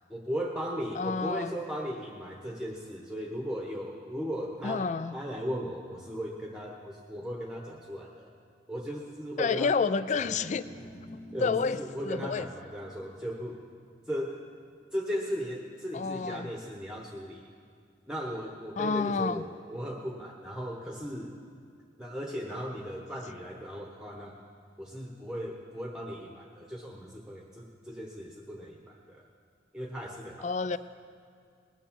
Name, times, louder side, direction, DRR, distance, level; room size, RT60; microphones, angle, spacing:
voice 1, 0.1-8.3 8.7-10.4 11.3-13.6 14.1-14.4 14.9-17.5 18.1-21.4 22.0-24.3 24.8-29.3 29.7-30.5, equal, 5° right, 0 dB, 1.0 m, -37 dB
voice 2, 1.0-1.5 4.6-5.1 9.4-10.6 11.4-11.8 12.0-12.5 15.9-16.5 18.8-19.4 30.4-30.8, left 5 dB, 40° left, 15 dB, 0.3 m, -29 dB
sound 1, 10.0-16.4, equal, 60° left, 1.8 m, -51 dB
19.5 x 9.8 x 7.3 m, 2.3 s
head